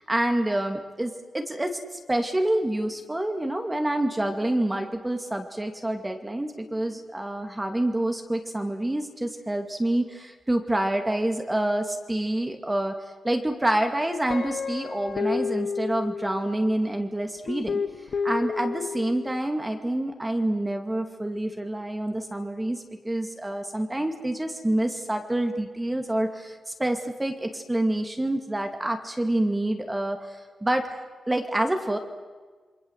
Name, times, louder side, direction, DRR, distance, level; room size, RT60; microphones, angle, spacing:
voice 1, 0.0-12.9 13.2-17.8 18.2-31.0 31.3-32.0, right 1 dB, 10° right, 5 dB, 2.3 m, -27 dB
Guitar, 14.3-16.8 17.5-19.4, left 5 dB, 55° left, 1.1 m, -31 dB
28.0 x 24.5 x 8.1 m, 1.4 s
wide cardioid pair, 145°, 0 cm